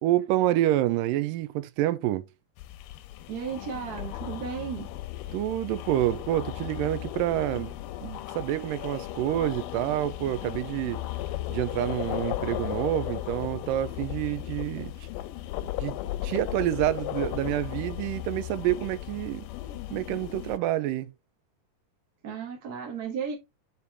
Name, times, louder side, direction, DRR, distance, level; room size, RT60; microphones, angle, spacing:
voice 1, 0.0-2.3 5.3-11.0 11.5-15.1 15.8-16.0 16.2-19.5 19.9-21.1, right 14 dB, 85° right, 2.3 m, -28 dB
sound 1, 2.6-20.6, left 14 dB, 85° left, 2.3 m, -36 dB
voice 2, 3.3-4.9 22.2-23.4, right 7 dB, 40° right, 1.4 m, -34 dB
8.2 x 4.3 x 3.4 m
omnidirectional pair, 3.8 m